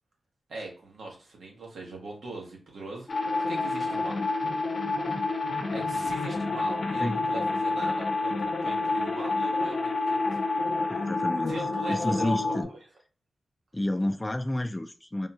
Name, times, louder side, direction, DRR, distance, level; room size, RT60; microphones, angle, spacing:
voice 1, 0.5-4.2 5.7-10.4 11.5-12.8, right 2 dB, 85° right, 1.0 m, -41 dB
sound 1, 3.1-12.6, left 3 dB, 55° left, 0.6 m, -28 dB
voice 2, 10.9-11.6 11.9-12.7 13.7-15.3, left 1 dB, 20° left, 0.3 m, -30 dB
3.5 x 2.3 x 2.7 m
cardioid pair, 75°, 0 cm